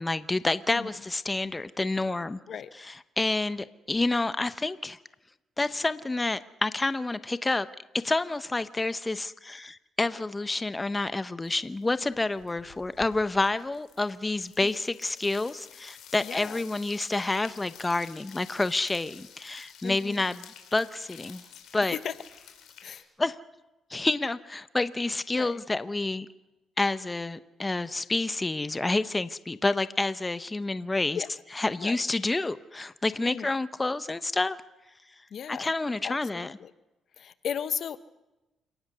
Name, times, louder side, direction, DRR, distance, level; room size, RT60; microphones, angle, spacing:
voice 1, 0.0-2.4 2.7-5.0 5.6-7.7 7.9-21.4 21.7-22.0 23.2-23.4 23.9-26.3 26.8-31.2 31.5-34.6 35.5-36.6, left 2 dB, 20° left, 14 dB, 0.9 m, -29 dB
sound 1, 11.4-11.8 12.1-23.0, left 9 dB, 80° left, 4.3 m, -51 dB
voice 2, 16.2-16.6 19.8-20.2 21.9-22.1 22.8-23.0 25.3-25.6 31.1-31.3 31.8-32.0 33.2-33.5 35.3-35.7 36.0-36.7 37.2-38.0, left 8 dB, 60° left, 14 dB, 1.1 m, -35 dB
29.0 x 18.5 x 6.8 m, 1.0 s
cardioid pair, 90°, 0 cm